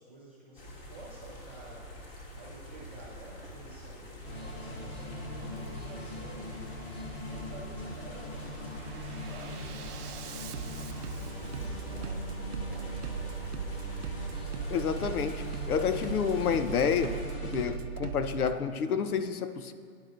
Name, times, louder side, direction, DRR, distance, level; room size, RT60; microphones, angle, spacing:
voice 1, 0.0-2.0 2.3-6.7 7.2-13.4, right 2 dB, 10° right, -8 dB, 0.4 m, -50 dB
sound 1, 0.6-17.2, left 1 dB, 40° left, 2.4 m, -47 dB
Bass drum, 2.7-3.0 3.4-3.9 4.7-5.0 5.4-5.9 6.7-7.0 7.4-7.9 8.3-18.5, right 7 dB, 90° right, 0.8 m, -40 dB
sound 2, 4.2-17.6, left 1 dB, 25° left, 1.8 m, -41 dB
voice 2, 14.7-19.7, left 7 dB, 75° left, 11 dB, 0.8 m, -29 dB
17.5 x 10.5 x 2.6 m, 2.1 s
hypercardioid pair, 160°, 45 cm